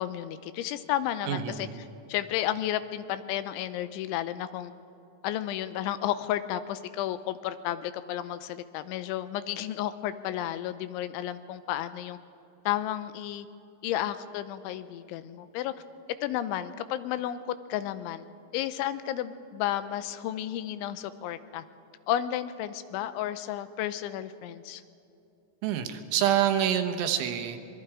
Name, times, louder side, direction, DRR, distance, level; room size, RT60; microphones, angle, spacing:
voice 1, 0.0-1.7 2.1-4.7 5.2-12.2 12.7-13.5 13.8-15.7 16.2-18.3 18.5-21.6 22.1-24.8, left 12 dB, 85° left, 12 dB, 3.1 m, -32 dB
voice 2, 1.3-1.8 25.6-27.6, right 10 dB, 80° right, 5 dB, 3.5 m, -27 dB
25.0 x 21.5 x 4.9 m, 2.7 s
omnidirectional pair, 5.4 m